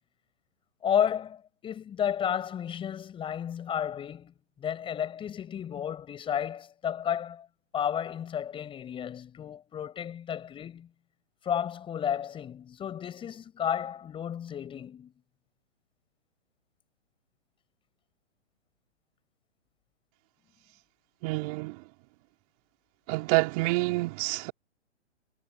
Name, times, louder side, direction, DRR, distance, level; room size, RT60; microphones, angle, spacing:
voice 1, 0.8-7.5 7.7-10.9 11.4-15.1, left 9 dB, 15° left, 6.4 m, -32 dB
voice 2, 21.2-21.8 23.1-24.5, right 25 dB, 30° right, 4.9 m, -28 dB
hypercardioid pair, 140°, 36 cm